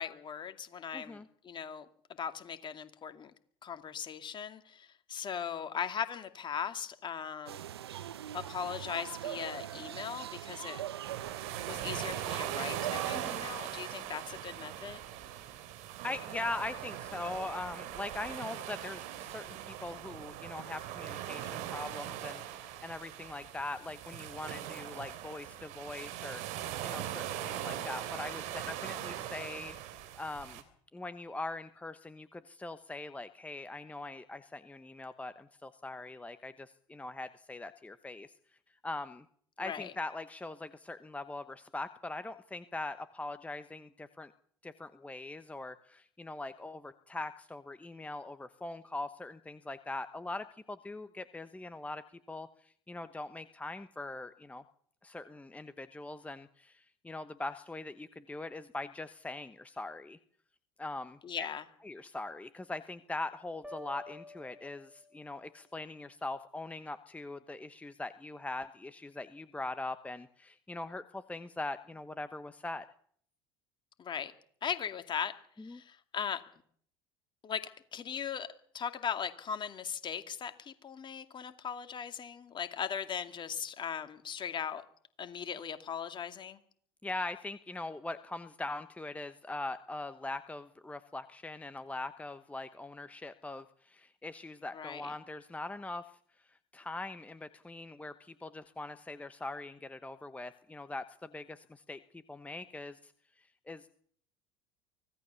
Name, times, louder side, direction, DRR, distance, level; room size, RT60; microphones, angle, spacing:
voice 1, 0.0-1.9 2.2-3.3 3.6-7.7 8.3-10.8 11.7-15.0 39.6-39.9 61.2-61.6 74.0-74.3 74.6-75.3 75.6-76.4 77.4-77.6 77.9-78.5 78.7-84.8 85.2-86.6 94.7-95.1, left 7 dB, 35° left, 9 dB, 2.4 m, -39 dB
voice 2, 0.9-1.3 13.1-13.4 16.0-29.8 30.2-30.6 30.9-38.3 38.8-39.2 39.6-44.3 44.6-54.6 55.0-60.2 60.8-61.5 61.8-72.9 75.6-75.8 87.0-96.1 96.5-103.1 103.4-103.9, left 2 dB, 10° left, 12 dB, 1.1 m, -42 dB
sound 1, 7.5-13.4, right 11 dB, 85° right, 0.9 m, -41 dB
sound 2, 11.0-30.6, right 11 dB, 65° right, 3.3 m, -41 dB
sound 3, 63.6-65.5, left 2 dB, 5° right, 3.5 m, -50 dB
24.5 x 17.0 x 6.9 m, 0.62 s
hypercardioid pair, 75°, 13 cm